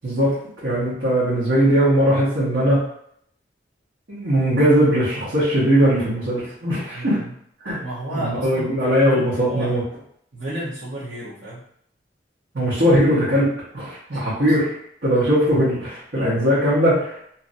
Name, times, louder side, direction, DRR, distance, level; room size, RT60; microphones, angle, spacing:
voice 1, 0.0-0.3 0.6-2.8 4.1-7.2 7.6-7.8 8.1-9.8 12.5-14.7 15.0-17.3, equal, 70° right, -11 dB, 1.2 m, -19 dB
voice 2, 6.9-7.3 7.8-9.8 10.3-11.6 14.1-14.5, right 1 dB, 90° right, -11 dB, 0.9 m, -32 dB
2.8 x 2.6 x 2.6 m, 0.68 s
head